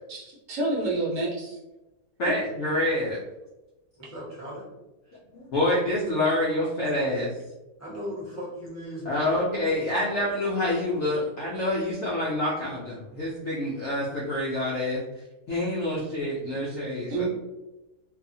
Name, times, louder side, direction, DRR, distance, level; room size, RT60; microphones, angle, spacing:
voice 1, 0.1-1.6 17.1-17.3, right 2 dB, 70° right, -4 dB, 1.2 m, -28 dB
voice 2, 2.2-3.2 5.3-7.3 9.1-15.0 15.5-17.3, left 1 dB, 70° left, -4 dB, 0.7 m, -27 dB
voice 3, 4.0-4.7 5.0-5.2 7.8-9.2, equal, 15° left, -9 dB, 0.7 m, -37 dB
2.7 x 2.4 x 2.6 m, 1.0 s
omnidirectional pair, 1.7 m